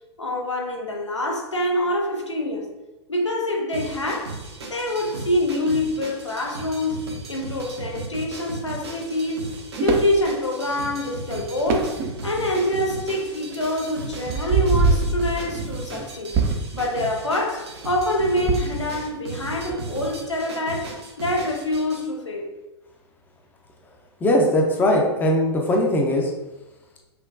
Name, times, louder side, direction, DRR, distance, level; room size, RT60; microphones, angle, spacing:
voice 1, 0.2-2.7 3.1-4.4 4.7-9.5 9.8-16.4 16.7-22.5, left 1 dB, 85° left, 0 dB, 0.7 m, -25 dB
sound 1, 3.7-22.0, right 3 dB, 65° right, 0.8 m, -36 dB
sound 2, 9.5-10.1 11.3-11.4 11.7-12.3 13.0-13.1 13.5-16.0 16.3-16.8 18.0-19.2 19.5-19.9, right 4 dB, 30° right, 0.4 m, -24 dB
voice 2, 24.2-26.3, left 1 dB, 10° left, 0 dB, 0.6 m, -20 dB
5.8 x 2.2 x 2.5 m, 1.1 s
figure-of-eight pair, 100°, 15 cm